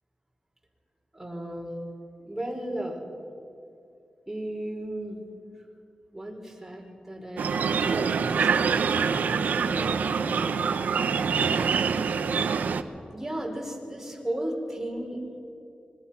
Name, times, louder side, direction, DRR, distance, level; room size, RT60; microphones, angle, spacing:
voice 1, 1.1-1.8 2.2-3.0 4.3-5.2 6.1-8.5 9.2-10.8 13.1-15.4, right 1 dB, 10° right, -1 dB, 5.1 m, -35 dB
sound 1, 7.4-12.8, right 6 dB, 85° right, 0.9 m, -25 dB
25.5 x 20.0 x 5.9 m, 2.6 s
cardioid pair, 70°, 3 cm